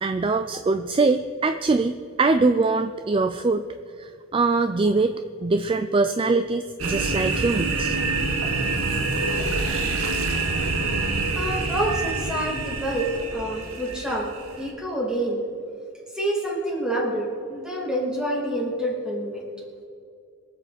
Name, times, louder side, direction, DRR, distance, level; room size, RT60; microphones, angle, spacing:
voice 1, 0.0-3.6 4.0-5.1 5.4-8.1, right 3 dB, 25° right, 9 dB, 0.3 m, -23 dB
sound 1, 6.8-14.7, right 3 dB, 75° right, 1.5 m, -26 dB
voice 2, 11.4-14.3 14.6-15.4 16.1-19.4, right 1 dB, 5° right, -3 dB, 2.6 m, -27 dB
23.5 x 7.8 x 4.2 m, 2.5 s
head